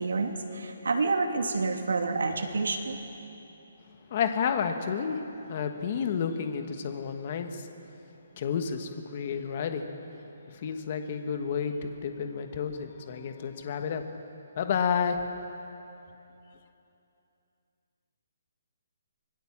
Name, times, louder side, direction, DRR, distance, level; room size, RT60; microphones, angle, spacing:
voice 1, 0.0-3.0, right 3 dB, 90° right, 3 dB, 2.9 m, -28 dB
voice 2, 4.1-5.2 5.5-7.7 8.4-9.8 10.5-14.0 14.6-15.2, left 7 dB, 30° left, 7 dB, 1.3 m, -30 dB
25.0 x 20.5 x 7.3 m, 2.9 s
hypercardioid pair, 175°, 0 cm